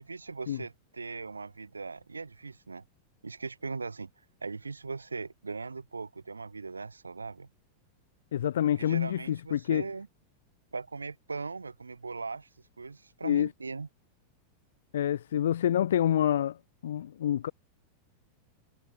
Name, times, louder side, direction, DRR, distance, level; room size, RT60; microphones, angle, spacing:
voice 1, 0.0-2.8 3.2-4.1 4.4-7.5 8.8-10.1 10.7-12.5 12.8-13.9, right 4 dB, 80° right, 7.1 m, -39 dB
voice 2, 8.3-9.8 13.2-13.5 14.9-16.6 16.8-17.5, left 10 dB, 60° left, 7.2 m, -27 dB
figure-of-eight pair, 90°, 0 cm